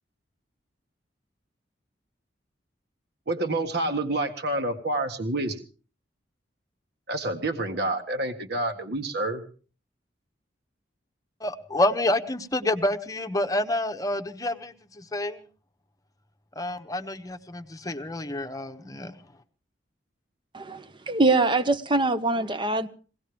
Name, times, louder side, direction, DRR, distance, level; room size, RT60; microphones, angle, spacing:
voice 1, 3.3-5.6 7.1-9.4, right 2 dB, 60° right, 1.7 m, -28 dB
voice 2, 11.4-15.4 16.6-19.1, left 1 dB, 20° left, 1.1 m, -28 dB
voice 3, 20.5-22.9, right 3 dB, 25° right, 0.9 m, -23 dB
22.5 x 18.0 x 3.5 m
head